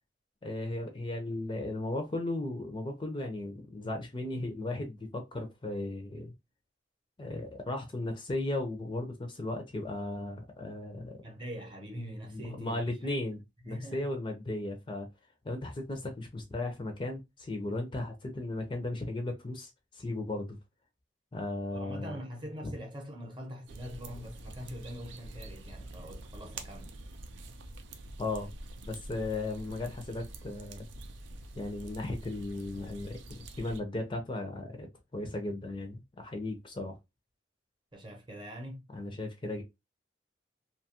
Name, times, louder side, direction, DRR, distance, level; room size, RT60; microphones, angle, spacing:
voice 1, 0.4-6.3 7.2-11.2 12.3-15.1 15.4-20.6 21.3-22.2 22.6-22.7 28.2-28.5 28.8-30.9 31.5-37.0 38.9-39.6, left 2 dB, 25° left, 0.4 m, -36 dB
voice 2, 11.2-13.1 13.6-14.1 21.7-27.0 37.9-38.8, equal, 25° right, 0.7 m, -43 dB
sound 1, 23.7-33.8, right 2 dB, 90° right, 0.5 m, -46 dB
2.7 x 2.3 x 2.8 m
head